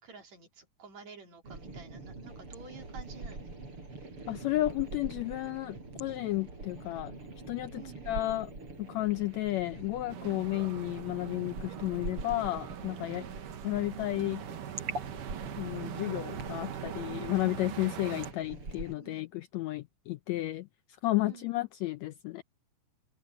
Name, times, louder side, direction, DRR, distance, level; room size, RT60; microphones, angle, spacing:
voice 1, 0.0-3.4 7.7-8.1 10.2-10.6 13.1-13.3 19.0-19.3 21.2-21.6, right 5 dB, 60° right, 4.6 m, -51 dB
sound 1, 1.4-18.9, right 3 dB, 40° right, 6.6 m, -44 dB
voice 2, 4.3-7.1 7.5-8.5 8.8-13.2 13.6-14.5 15.6-20.7 21.0-22.4, left 17 dB, 80° left, 1.6 m, -32 dB
sound 2, 10.1-18.3, right 10 dB, 85° right, 3.1 m, -42 dB
open air
omnidirectional pair, 3.7 m